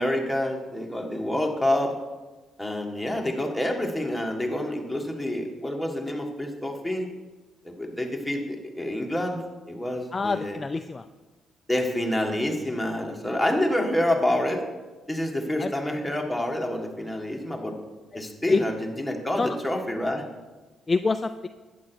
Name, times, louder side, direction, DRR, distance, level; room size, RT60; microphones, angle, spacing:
voice 1, 0.0-2.0 2.6-7.1 7.6-10.6 11.7-14.6 15.1-17.8 18.1-20.2, left 1 dB, ahead, 0 dB, 1.7 m, -28 dB
voice 2, 10.1-11.1 15.6-15.7 18.1-18.2 18.5-18.6 19.4-19.6 20.9-21.5, left 4 dB, 25° left, 8 dB, 0.4 m, -26 dB
11.5 x 9.2 x 4.6 m, 1.2 s
cardioid pair, 90°, 0 cm